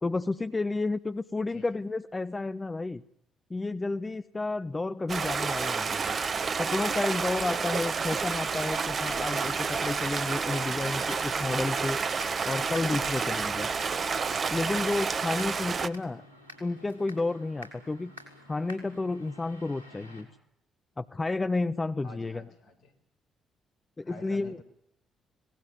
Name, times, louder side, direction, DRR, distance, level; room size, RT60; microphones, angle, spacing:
voice 1, 0.0-3.0 3.5-6.2 6.6-12.0 12.4-13.7 14.5-16.2 16.6-18.1 18.5-20.3 21.0-22.4 24.0-24.6, left 3 dB, 25° left, 12 dB, 1.1 m, -31 dB
Stream, 5.1-15.9, right 5 dB, 45° right, 1.3 m, -30 dB
sound 1, 8.4-20.2, left 1 dB, 85° right, 5.7 m, -50 dB
voice 2, 22.0-22.9 24.0-24.6, left 2 dB, 65° left, 8 dB, 4.8 m, -49 dB
25.5 x 19.0 x 9.3 m, 0.78 s
figure-of-eight pair, 40°, 0 cm